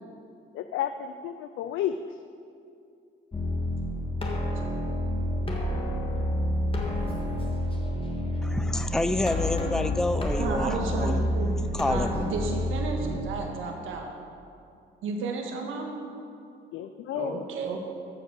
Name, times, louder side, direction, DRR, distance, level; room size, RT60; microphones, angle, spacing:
voice 1, 0.5-2.0 16.7-17.5, left 10 dB, 85° left, 9 dB, 0.5 m, -31 dB
sound 1, 3.3-13.2, left 1 dB, 25° left, 1.7 m, -29 dB
voice 2, 8.4-11.2 11.7-12.3, left 1 dB, 5° left, 10 dB, 0.5 m, -28 dB
voice 3, 10.4-11.5 11.8-14.1 15.0-15.9 17.1-17.8, right 4 dB, 85° right, 2 dB, 1.4 m, -32 dB
14.5 x 5.2 x 6.4 m, 2.5 s
cardioid pair, 90°, 20 cm